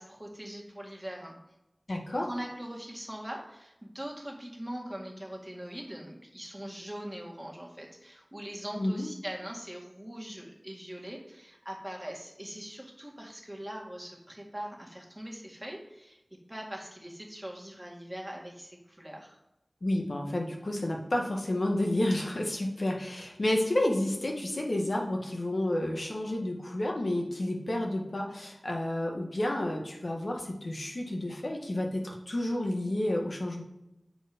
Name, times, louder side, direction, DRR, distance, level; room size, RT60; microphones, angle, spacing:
voice 1, 0.0-1.4 2.2-16.2 16.5-19.4, equal, 10° right, -1 dB, 2.0 m, -42 dB
voice 2, 1.9-2.3 8.8-9.1 19.8-33.6, left 1 dB, 75° left, 0 dB, 1.5 m, -30 dB
7.8 x 4.5 x 5.1 m, 0.90 s
wide cardioid pair, 40°, 0 cm